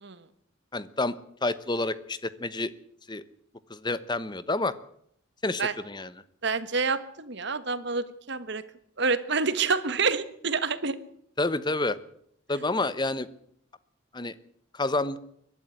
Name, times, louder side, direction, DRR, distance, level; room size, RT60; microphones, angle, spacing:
voice 1, 0.7-1.2 1.4-2.7 3.1-3.2 3.7-4.7 5.4-6.1 11.4-12.0 12.5-13.3 14.1-14.3 14.7-15.2, left 2 dB, 20° left, 15 dB, 1.0 m, -28 dB
voice 2, 6.4-8.6 9.0-11.0, right 4 dB, 60° right, 13 dB, 1.5 m, -28 dB
22.5 x 12.0 x 9.9 m, 0.69 s
head